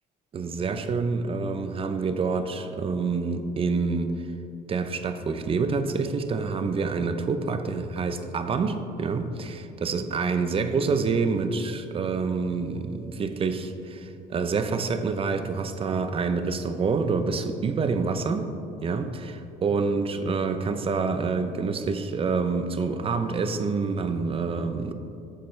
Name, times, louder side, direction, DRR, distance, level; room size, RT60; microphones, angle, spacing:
voice 1, 0.3-4.3 4.7-18.5 18.8-24.9, right 4 dB, 35° right, 9 dB, 0.5 m, -27 dB
8.9 x 6.9 x 3.2 m, 2.7 s
cardioid pair, 110°, 17 cm